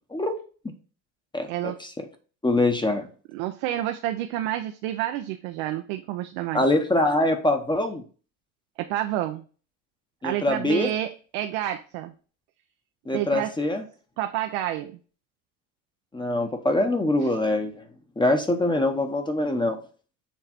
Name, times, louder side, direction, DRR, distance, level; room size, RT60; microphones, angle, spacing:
voice 1, 1.3-1.9 2.4-3.1 6.5-8.0 10.2-10.9 13.1-13.8 16.1-17.9 18.2-19.8, left 2 dB, 10° left, 6 dB, 0.8 m, -24 dB
voice 2, 3.3-6.6 8.8-9.4 10.2-12.1 13.1-13.5 14.2-14.9 17.2-17.3, right 13 dB, 80° right, 6 dB, 0.7 m, -29 dB
7.2 x 3.3 x 4.2 m, 0.38 s
supercardioid pair, 110°, 40 cm